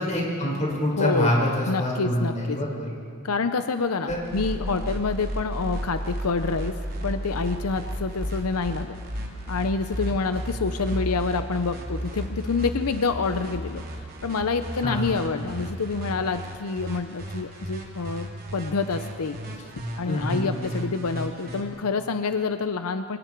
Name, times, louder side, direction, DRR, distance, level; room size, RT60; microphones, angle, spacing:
voice 1, 0.0-2.9 4.1-4.2 14.8-15.2 20.1-20.7, left 1 dB, 35° left, -3 dB, 5.2 m, -26 dB
voice 2, 1.0-1.3 1.7-2.6 3.2-13.8 14.2-19.4 20.0-23.2, left 4 dB, 85° left, 9 dB, 0.7 m, -27 dB
sound 1, 4.1-21.6, equal, 45° right, 3.4 m, -34 dB
28.5 x 24.0 x 4.6 m, 2.4 s
head